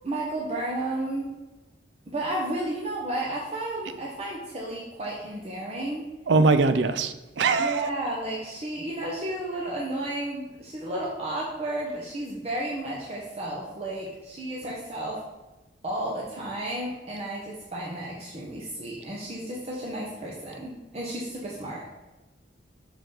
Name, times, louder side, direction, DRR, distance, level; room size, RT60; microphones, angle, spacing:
voice 1, 0.0-1.3 2.1-6.0 7.5-15.2 15.8-21.9, right 1 dB, 35° right, -4 dB, 0.9 m, -32 dB
voice 2, 6.3-7.9, right 3 dB, 75° right, 11 dB, 0.5 m, -22 dB
6.4 x 4.5 x 3.9 m, 1.1 s
head